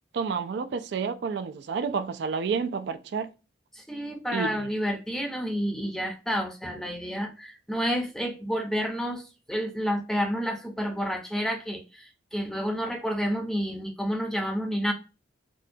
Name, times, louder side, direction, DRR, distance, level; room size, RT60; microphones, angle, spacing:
voice 1, 0.1-3.3 4.3-4.7, right 5 dB, 65° right, 0.3 m, -30 dB
voice 2, 3.7-14.9, equal, 5° left, 0.5 m, -30 dB
4.3 x 2.2 x 2.7 m
head